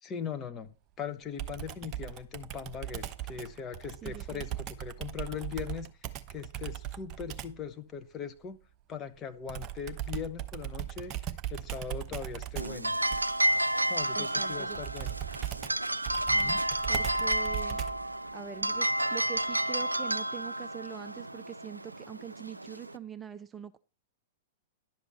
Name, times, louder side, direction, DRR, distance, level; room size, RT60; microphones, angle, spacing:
voice 1, 0.0-8.6 8.9-11.1 11.5-13.0 13.9-15.2 16.3-16.6, left 7 dB, 25° left, 1.3 m, -40 dB
Computer keyboard, 1.4-7.6 9.5-18.1, right 11 dB, 30° right, 1.0 m, -39 dB
voice 2, 4.0-4.4 14.1-14.8 16.3-16.5 16.9-17.8 18.3-23.8, right 9 dB, 15° right, 0.6 m, -44 dB
sound 1, 12.6-23.0, right 1 dB, 90° right, 0.4 m, -31 dB
11.5 x 7.3 x 4.3 m
figure-of-eight pair, 105°, 0 cm